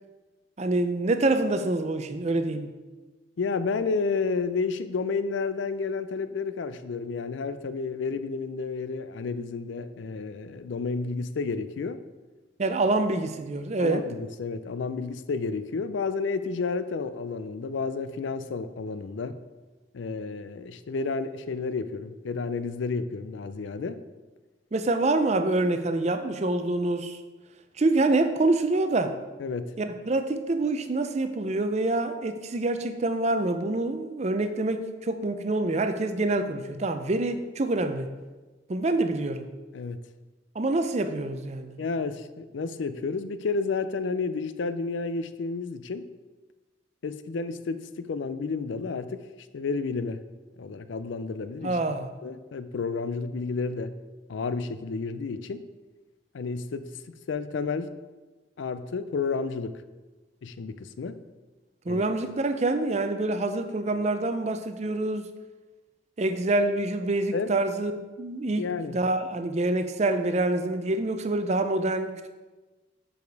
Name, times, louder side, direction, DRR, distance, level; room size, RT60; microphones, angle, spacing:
voice 1, 0.6-2.7 12.6-14.0 24.7-27.2 27.8-29.2 29.8-38.1 38.7-39.5 40.6-41.8 51.6-52.1 61.9-65.3 66.2-72.3, right 2 dB, 35° right, 9 dB, 0.5 m, -26 dB
voice 2, 3.4-12.0 13.8-19.4 19.9-24.0 29.4-29.7 39.7-40.0 41.8-46.1 47.0-49.2 49.5-50.2 50.6-52.0 52.2-53.9 54.3-55.6 56.3-57.9 58.6-59.8 60.4-61.2 61.9-62.0 67.3-67.5 68.6-69.0, left 4 dB, 75° left, 12 dB, 0.4 m, -31 dB
7.2 x 5.0 x 4.6 m, 1.2 s
head